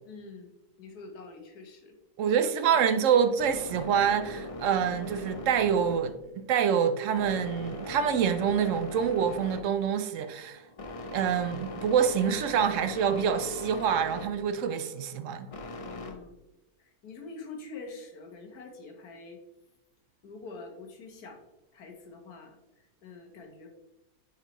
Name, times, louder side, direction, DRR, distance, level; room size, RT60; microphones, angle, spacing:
voice 1, 0.0-0.5 0.8-2.0 15.8-16.3 16.8-19.4 20.2-21.5 21.7-23.7, left 4 dB, 85° left, 1.6 m, -45 dB
voice 2, 2.2-10.6 11.1-15.5, right 7 dB, 70° right, 0.8 m, -26 dB
sound 1, 2.5-16.1, left 1 dB, 45° left, 0.4 m, -41 dB
9.9 x 4.5 x 3.0 m
omnidirectional pair, 1.6 m